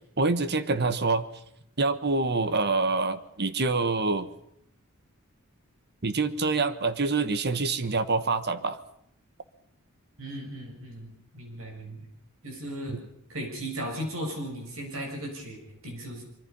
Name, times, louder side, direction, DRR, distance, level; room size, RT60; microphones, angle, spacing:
voice 1, 0.2-1.3 1.8-4.3 6.0-8.8, right 3 dB, 50° right, 12 dB, 1.4 m, -26 dB
voice 2, 10.2-12.1 12.4-13.0 13.3-16.2, equal, 70° right, 2 dB, 7.3 m, -36 dB
25.0 x 23.5 x 5.5 m, 0.73 s
head